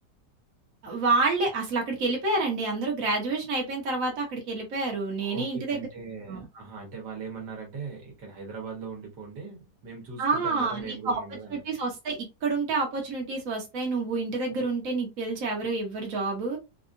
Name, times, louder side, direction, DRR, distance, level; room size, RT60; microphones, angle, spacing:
voice 1, 0.8-5.9 6.3-6.4 10.2-11.2 11.5-16.6, right 3 dB, 55° right, 1.5 m, -28 dB
voice 2, 5.2-11.6, right 5 dB, 75° right, 1.8 m, -40 dB
4.1 x 2.5 x 2.5 m
omnidirectional pair, 1.8 m